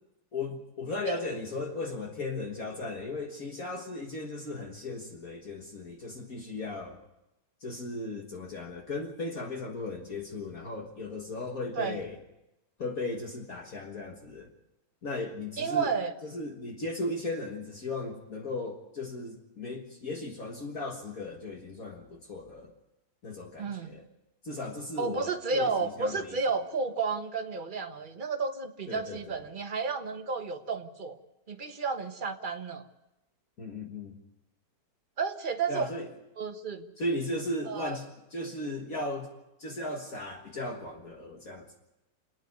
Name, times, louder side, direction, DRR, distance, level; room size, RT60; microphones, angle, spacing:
voice 1, 0.3-7.0 7.6-12.2 12.8-14.5 15.0-15.9 16.2-22.7 23.2-24.0 24.4-26.3 28.9-29.4 33.6-34.2 35.7-36.1 37.0-39.3 39.6-41.8, left 2 dB, 50° left, 1 dB, 2.0 m, -36 dB
voice 2, 15.6-16.1 23.6-23.9 25.0-31.2 31.5-32.9 35.2-35.9 36.4-36.9 37.7-38.0, right 4 dB, 30° right, 6 dB, 1.2 m, -32 dB
28.5 x 9.6 x 9.6 m, 0.93 s
omnidirectional pair, 2.0 m